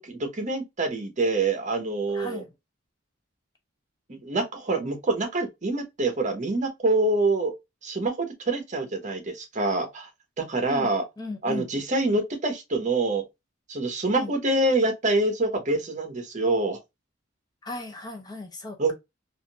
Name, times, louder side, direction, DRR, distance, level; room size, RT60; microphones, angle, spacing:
voice 1, 0.0-2.4 4.1-7.5 7.8-10.1 10.4-11.0 11.4-13.2 13.7-16.8 18.8-18.9, right 2 dB, 40° right, 0.9 m, -26 dB
voice 2, 2.1-2.5 10.7-10.9 11.2-11.7 14.1-14.3 17.6-18.9, left 2 dB, 20° left, 0.6 m, -36 dB
3.6 x 2.6 x 2.2 m
head